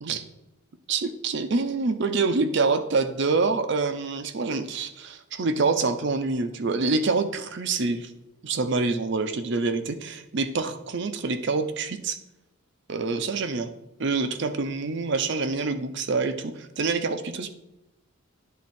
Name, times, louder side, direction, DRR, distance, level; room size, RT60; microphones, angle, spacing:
voice 1, 0.9-8.1 8.4-12.2 12.9-13.7 14.0-17.5, right 4 dB, 55° right, 10 dB, 0.6 m, -26 dB
10.0 x 3.6 x 4.3 m, 0.90 s
head